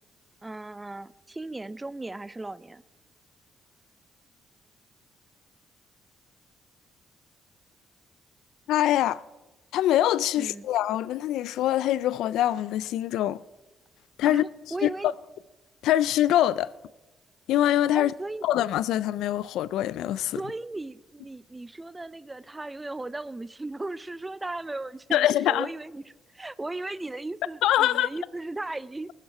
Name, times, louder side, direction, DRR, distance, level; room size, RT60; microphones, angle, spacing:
voice 1, 0.4-2.8 10.3-10.7 14.3-15.1 17.9-18.5 20.3-29.1, right 2 dB, 15° right, 0.4 m, -36 dB
voice 2, 8.7-9.2 9.7-13.4 14.2-14.4 14.8-15.1 15.8-16.7 17.5-18.1 18.4-20.4 25.1-25.7 27.6-28.1, left 13 dB, 85° left, 0.3 m, -24 dB
20.5 x 7.3 x 4.7 m
cardioid pair, 90°, 0 cm